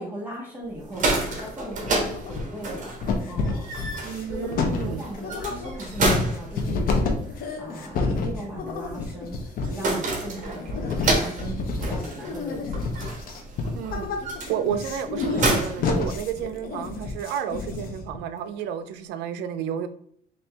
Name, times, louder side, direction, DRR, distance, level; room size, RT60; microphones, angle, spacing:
voice 1, 0.0-2.9 3.2-3.7 4.3-4.5 4.8-12.8, right 1 dB, 10° right, -5 dB, 1.5 m, -38 dB
sound 1, 0.7-16.7, right 2 dB, 50° right, 1.2 m, -31 dB
sound 2, 1.0-1.6 1.9-2.7 3.0-18.2, left 3 dB, 60° left, 0.8 m, -29 dB
voice 2, 4.0-5.0 13.7-19.9, right 9 dB, 85° right, 10 dB, 0.5 m, -31 dB
4.2 x 2.7 x 3.4 m, 0.64 s
cardioid pair, 110°, 17 cm